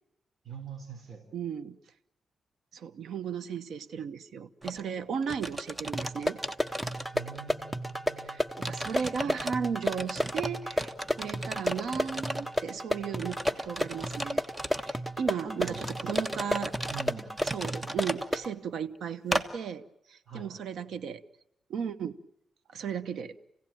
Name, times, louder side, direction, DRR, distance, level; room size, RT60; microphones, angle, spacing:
voice 1, 0.4-1.2 7.1-8.5 15.2-16.5 16.9-17.3 20.3-20.5, right 6 dB, 50° right, 3 dB, 4.1 m, -44 dB
voice 2, 1.3-1.8 2.7-6.4 8.2-14.4 14.7-16.7 17.5-19.8 20.1-21.2 21.7-22.2 22.7-23.4, right 7 dB, 85° right, 13 dB, 1.0 m, -35 dB
sound 1, 4.6-4.8 5.2-7.5 7.9-8.0 8.6-9.5 9.8-12.6 13.1-15.0 15.6-18.3 19.3-19.5, right 1 dB, 20° right, 1.4 m, -36 dB
sound 2, 5.9-18.5, equal, 5° right, 1.1 m, -33 dB
28.5 x 17.0 x 9.1 m, 0.83 s
cardioid pair, 90°, 0 cm